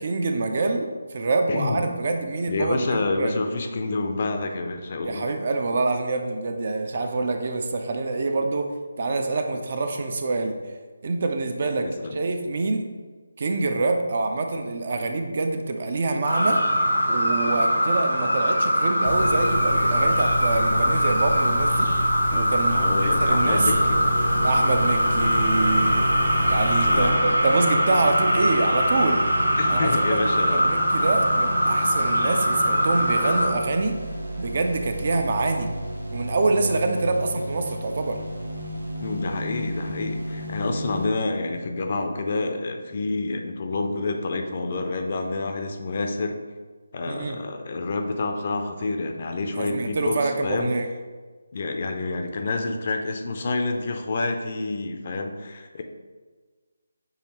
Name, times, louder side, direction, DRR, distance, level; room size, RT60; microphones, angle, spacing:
voice 1, 0.0-3.3 5.0-8.7 9.0-10.5 11.0-12.8 13.4-16.6 17.1-21.9 22.3-23.7 24.4-26.1 26.5-29.2 29.7-30.2 30.5-34.0 34.4-35.7 36.1-38.2 47.1-47.4 49.5-50.9, right 3 dB, 45° right, 5 dB, 0.4 m, -26 dB
voice 2, 1.5-1.9 2.5-5.3 11.8-12.2 22.7-24.0 26.9-27.3 29.6-30.7 39.0-46.4 46.9-50.7 51.5-55.8, left 3 dB, 40° left, 5 dB, 0.5 m, -28 dB
sound 1, 16.2-33.5, equal, 85° left, 1.2 m, -22 dB
sound 2, 19.0-27.1, left 1 dB, 65° left, 0.8 m, -29 dB
sound 3, 23.0-41.1, right 1 dB, 75° right, 0.9 m, -32 dB
6.3 x 2.8 x 2.9 m, 1.4 s
figure-of-eight pair, 155°, 0 cm